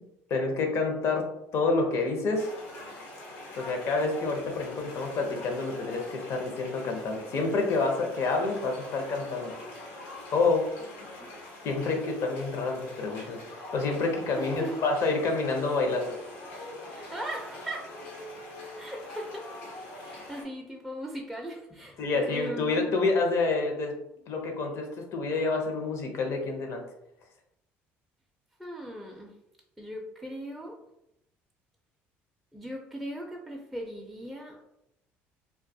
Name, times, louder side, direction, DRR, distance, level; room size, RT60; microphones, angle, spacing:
voice 1, 0.3-1.3 1.5-2.5 3.6-9.6 10.3-10.7 11.6-13.4 13.7-16.1 22.0-23.9 24.3-26.8, left 3 dB, 55° left, 3 dB, 0.6 m, -28 dB
sound 1, 2.3-20.4, left 1 dB, 85° left, 0.8 m, -44 dB
voice 2, 14.4-14.8 16.9-17.9 18.8-19.5 20.0-22.9 28.6-29.3 29.8-30.8 32.5-34.6, right 1 dB, ahead, -1 dB, 0.4 m, -38 dB
2.2 x 2.1 x 2.6 m, 0.82 s
supercardioid pair, 85°, 6 cm